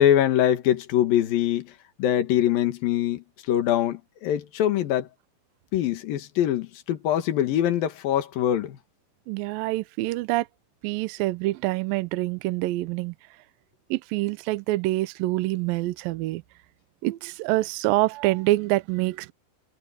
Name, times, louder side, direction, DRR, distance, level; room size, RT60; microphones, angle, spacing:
voice 1, 0.0-1.7 2.0-5.1 5.7-8.8, left 11 dB, 65° left, 3.3 m, -23 dB
voice 2, 9.3-10.5 10.8-13.1 13.9-16.4 17.0-19.3, right 18 dB, 80° right, 2.1 m, -26 dB
omnidirectional pair, 4.8 m